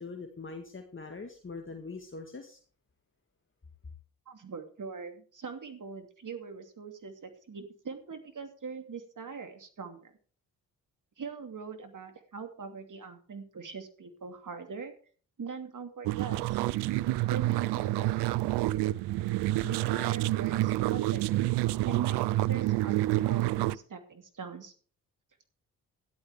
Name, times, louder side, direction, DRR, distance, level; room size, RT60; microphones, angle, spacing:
voice 1, 0.0-2.6, left 4 dB, 30° left, 4 dB, 2.1 m, -42 dB
voice 2, 4.3-10.1 11.2-14.9 15.4-16.6 17.3-18.3 19.6-21.4 21.9-24.7, right 5 dB, 45° right, 6 dB, 2.7 m, -42 dB
sound 1, 16.0-23.8, right 16 dB, 70° right, 0.6 m, -28 dB
13.5 x 11.5 x 3.5 m, 0.42 s
hypercardioid pair, 45°, 42 cm